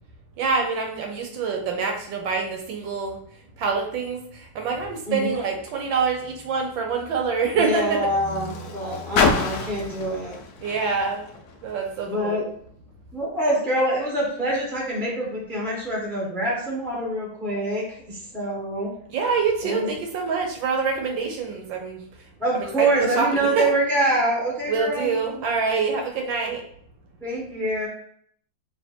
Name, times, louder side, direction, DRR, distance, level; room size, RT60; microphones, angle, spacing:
voice 1, 0.4-3.2 3.6-8.0 10.6-11.2 11.6-12.4 19.1-22.0 22.5-23.6 24.7-26.6, right 5 dB, 75° right, 2 dB, 1.3 m, -26 dB
Car, 5.5-12.1 13.0-13.1, left 4 dB, 75° left, 0.8 m, -30 dB
voice 2, 7.5-10.3 12.1-12.5 13.1-18.9 19.6-19.9 22.4-25.4 27.2-27.9, right 1 dB, ahead, -3 dB, 0.7 m, -25 dB
3.4 x 2.8 x 4.2 m, 0.65 s
omnidirectional pair, 2.2 m